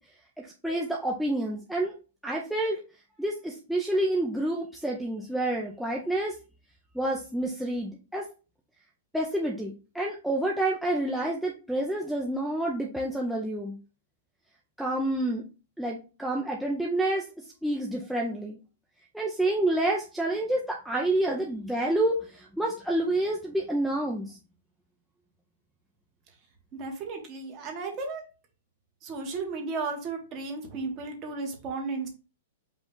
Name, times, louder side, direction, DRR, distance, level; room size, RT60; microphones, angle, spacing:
voice 1, 0.4-1.9 2.2-2.8 3.2-6.3 6.9-8.2 9.1-13.7 14.8-15.4 15.8-17.2 17.6-18.6 19.1-24.4, right 1 dB, ahead, -3 dB, 0.4 m, -28 dB
voice 2, 26.7-28.2 29.0-32.1, right 4 dB, 25° right, 2 dB, 1.1 m, -34 dB
5.1 x 2.3 x 3.7 m, 0.33 s
hypercardioid pair, 160°, 0 cm